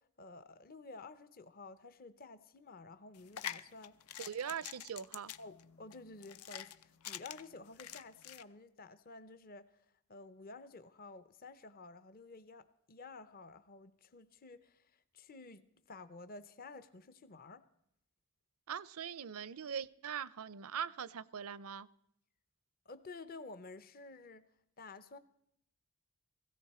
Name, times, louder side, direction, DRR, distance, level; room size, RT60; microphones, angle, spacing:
voice 1, 0.0-4.0 5.4-17.6 22.9-24.5 24.8-25.2, left 3 dB, 40° left, 0.6 m, -52 dB
sound 1, 3.1-8.4, left 10 dB, 80° left, 0.6 m, -46 dB
voice 2, 4.2-5.3 18.7-21.9, right 8 dB, 75° right, 0.5 m, -41 dB
17.0 x 16.5 x 4.2 m
head